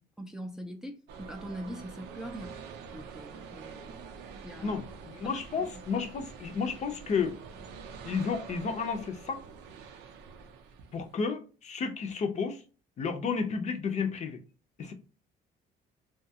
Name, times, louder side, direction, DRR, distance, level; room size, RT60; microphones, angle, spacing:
voice 1, 0.2-2.6 2.9-4.0 4.4-4.8 5.6-5.8, equal, 5° right, 0.4 m, -42 dB
silencio com movimento exposicao serralves, 1.1-11.1, right 6 dB, 90° right, 0.5 m, -46 dB
voice 2, 4.6-7.4 8.0-9.4 10.9-12.6 13.0-14.4 14.8-14.9, left 5 dB, 45° left, 0.5 m, -32 dB
2.7 x 2.3 x 2.7 m
cardioid pair, 110°, 17 cm